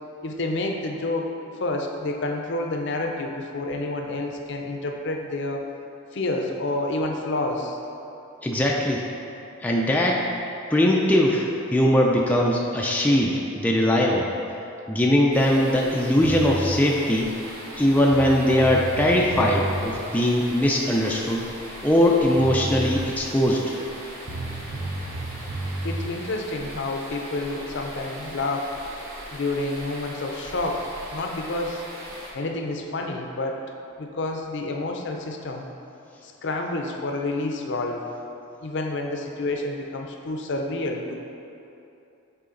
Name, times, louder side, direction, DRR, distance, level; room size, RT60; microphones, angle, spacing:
voice 1, 0.2-1.3 1.6-5.7 6.1-7.8 25.8-28.7 29.3-31.9 32.3-33.6 34.0-35.7 36.2-38.0 38.6-41.3, left 2 dB, 55° left, 2 dB, 0.5 m, -29 dB
voice 2, 8.4-9.1 9.6-10.3 10.7-14.3 14.9-17.3 17.8-21.5 21.8-23.8, left 1 dB, 10° left, -2 dB, 0.3 m, -21 dB
sound 1, 15.3-32.3, equal, 70° right, 1.5 m, -40 dB
sound 2, 16.2-16.8 17.8-17.9 18.1-19.8 22.0-22.1 22.4-23.0 24.3-26.0, right 2 dB, 55° right, 0.8 m, -31 dB
6.8 x 4.2 x 3.8 m, 2.8 s
head